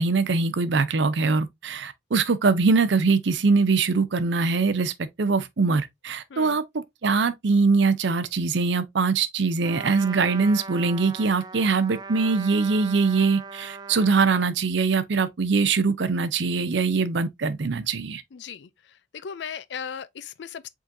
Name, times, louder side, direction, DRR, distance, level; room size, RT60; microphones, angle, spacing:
voice 1, 0.0-4.9 5.2-18.2, right 4 dB, 75° right, 0.6 m, -22 dB
voice 2, 6.3-6.6 18.3-20.7, left 7 dB, 70° left, 0.4 m, -37 dB
Trumpet, 9.6-14.5, right 4 dB, 20° right, 0.4 m, -39 dB
4.9 x 3.8 x 2.6 m
head